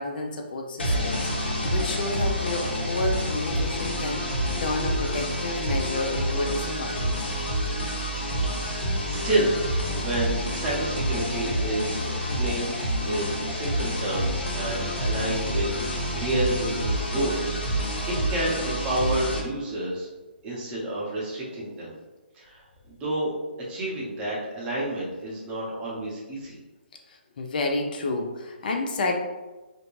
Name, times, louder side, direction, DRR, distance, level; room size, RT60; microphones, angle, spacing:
voice 1, 0.0-4.3 4.6-7.3 17.2-17.3 27.1-29.2, left 2 dB, 55° left, 3 dB, 0.4 m, -30 dB
sound 1, 0.8-19.4, equal, 80° left, 0.9 m, -28 dB
voice 2, 8.5-9.6 9.9-12.8 13.0-20.1 20.4-21.9 22.3-22.6 23.0-23.3 23.7-26.6, right 1 dB, 15° right, -6 dB, 0.7 m, -30 dB
2.6 x 2.1 x 3.1 m, 1.2 s
hypercardioid pair, 150°, 6 cm